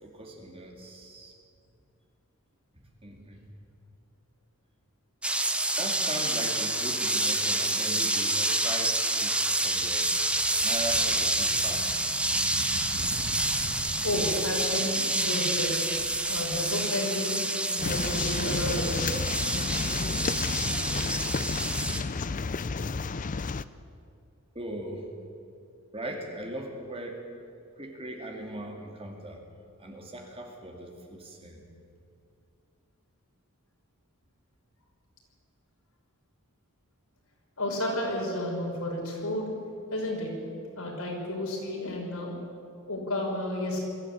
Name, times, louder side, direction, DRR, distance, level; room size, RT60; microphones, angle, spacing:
voice 1, 0.0-1.3 2.7-3.5 5.8-10.1 10.6-12.0 24.5-25.1 25.9-27.2 27.8-29.4 29.8-31.6, right 1 dB, 25° right, 2 dB, 2.5 m, -39 dB
sound 1, 5.2-22.0, right 1 dB, 5° right, 1.0 m, -28 dB
sound 2, 9.4-17.5 17.9-19.0, right 1 dB, 90° right, 1.7 m, -43 dB
voice 2, 14.0-15.8 16.3-17.4 17.7-19.0 37.6-39.5 39.9-40.3 40.7-42.4 42.9-43.8, left 1 dB, 75° left, -2 dB, 6.2 m, -31 dB
sound 3, 17.8-23.6, left 4 dB, 35° left, 0.5 m, -31 dB
22.5 x 14.5 x 8.6 m, 2.4 s
head